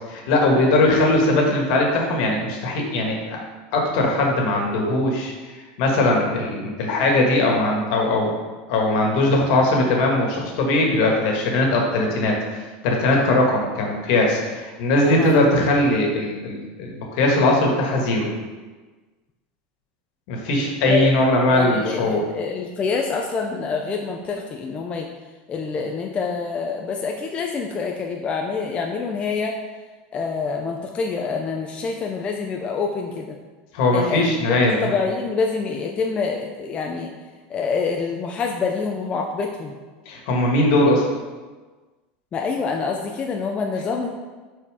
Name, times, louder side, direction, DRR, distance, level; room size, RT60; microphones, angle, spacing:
voice 1, 0.1-3.4 3.7-8.3 8.7-12.3 12.8-18.3 20.3-22.2 33.7-34.9 40.0-41.1, left 2 dB, 65° left, 0 dB, 1.5 m, -20 dB
voice 2, 15.0-15.4 20.9-21.1 21.5-25.1 25.5-29.6 30.1-33.4 33.9-34.2 34.6-37.1 37.5-39.8 42.3-44.1, left 5 dB, 25° left, 1 dB, 0.5 m, -26 dB
5.5 x 4.2 x 4.8 m, 1.3 s
supercardioid pair, 145°, 5 cm